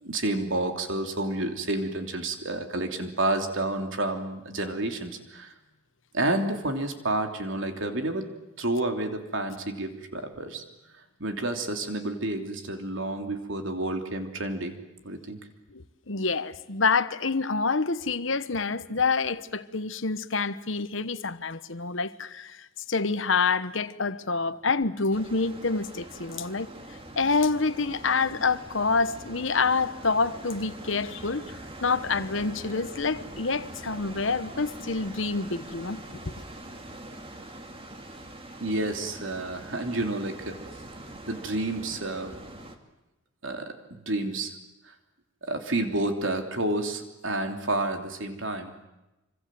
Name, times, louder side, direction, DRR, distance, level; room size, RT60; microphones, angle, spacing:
voice 1, 0.0-5.5 6.1-8.3 8.6-10.6 11.2-14.7 15.0-15.4 38.6-40.6 41.3-42.3 43.4-44.5 45.5-48.7, right 2 dB, 65° right, 3.1 m, -30 dB
voice 2, 15.7-26.7 27.2-31.6 31.8-36.3, left 4 dB, 65° left, 1.1 m, -27 dB
sound 1, 25.1-42.8, right 1 dB, 25° right, 2.4 m, -43 dB
26.5 x 25.5 x 7.7 m
head